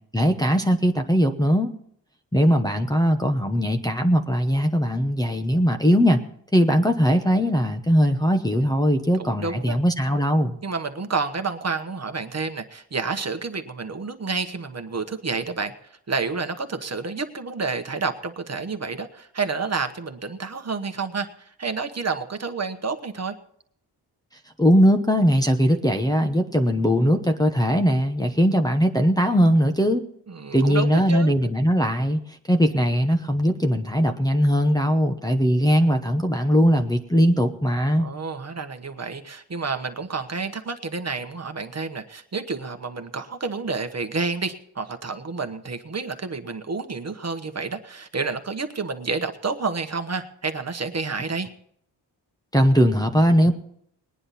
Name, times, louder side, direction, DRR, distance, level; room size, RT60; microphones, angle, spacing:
voice 1, 0.1-1.7 2.3-6.2 6.5-10.6 24.6-30.0 30.5-32.2 32.5-38.1 52.5-53.5, equal, 10° left, 2 dB, 1.0 m, -20 dB
voice 2, 9.2-9.8 10.6-23.3 30.3-31.3 38.0-51.5, right 4 dB, 35° right, 7 dB, 1.2 m, -29 dB
20.5 x 9.9 x 4.2 m, 0.68 s
wide cardioid pair, 120°, 42 cm